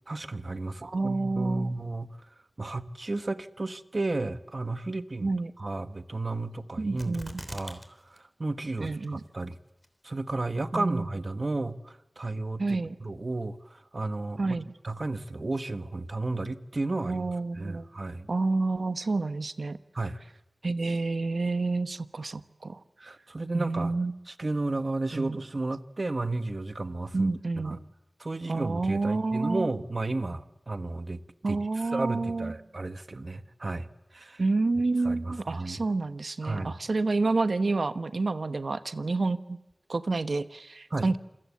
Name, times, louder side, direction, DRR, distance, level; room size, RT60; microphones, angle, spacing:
voice 1, 0.1-2.3 2.6-5.3 5.6-7.2 7.5-9.6 10.0-17.3 17.5-18.3 19.9-20.2 23.0-24.0 24.3-27.8 28.2-34.4 35.0-35.8 36.4-36.8 40.9-41.1, right 2 dB, 55° right, 11 dB, 1.3 m, -33 dB
voice 2, 0.8-1.7 5.2-5.5 6.8-7.4 8.8-9.2 10.7-11.1 12.6-13.0 14.4-14.7 17.0-17.9 18.3-19.8 20.6-22.8 23.5-24.1 25.1-25.4 27.1-27.8 28.5-29.7 31.4-32.5 34.4-39.6 39.9-41.2, right 3 dB, 80° right, 12 dB, 1.1 m, -29 dB
sound 1, 7.0-7.9 8.2-8.3 8.8-9.3 9.8-9.9, equal, ahead, 3.3 m, -41 dB
28.0 x 22.5 x 8.4 m, 0.86 s
wide cardioid pair, 55°, 0 cm